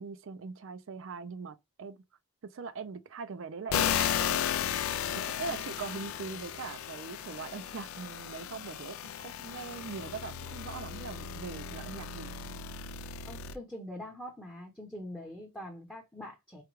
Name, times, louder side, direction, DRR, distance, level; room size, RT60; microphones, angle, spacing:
voice 1, 0.0-2.0 2.4-4.1 5.1-12.3, right 5 dB, 60° right, 0.4 m, -41 dB
sound 1, 3.7-13.6, left 9 dB, 70° left, 0.3 m, -35 dB
voice 2, 5.1-5.6 13.2-16.6, left 1 dB, 5° left, 0.7 m, -44 dB
5.0 x 2.2 x 3.0 m
head